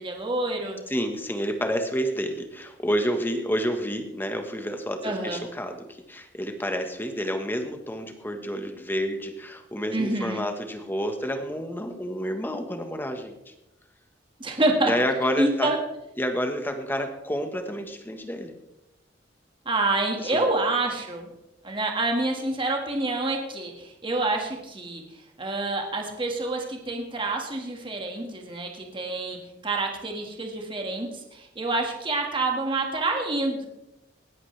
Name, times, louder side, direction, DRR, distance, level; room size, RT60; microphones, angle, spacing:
voice 1, 0.0-0.8 5.0-5.4 9.9-10.4 14.4-14.9 15.4-15.8 19.7-21.3 21.6-25.0 25.4-29.4 29.6-33.7, right 2 dB, 30° right, 2 dB, 1.9 m, -27 dB
voice 2, 0.9-13.5 14.8-15.7 16.2-18.5 20.2-20.5, equal, 10° left, 5 dB, 1.3 m, -29 dB
19.5 x 13.5 x 3.4 m, 0.93 s
head